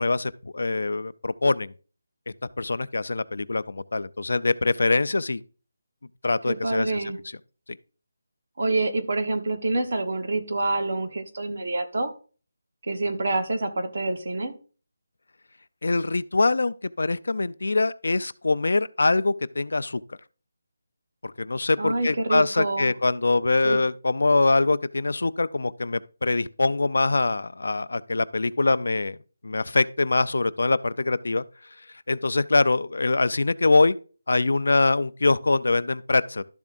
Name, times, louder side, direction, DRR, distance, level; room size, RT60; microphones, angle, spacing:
voice 1, 0.0-1.7 2.6-5.4 6.2-7.0 15.8-20.0 21.4-29.2 29.4-31.4 32.1-33.9 34.3-36.4, left 3 dB, 65° left, 0.4 m, -23 dB
voice 2, 6.5-7.2 8.6-12.1 12.8-14.5 21.8-22.9 23.6-23.8, right 2 dB, 40° right, 1.1 m, -27 dB
12.0 x 7.1 x 2.5 m
figure-of-eight pair, 180°, 0 cm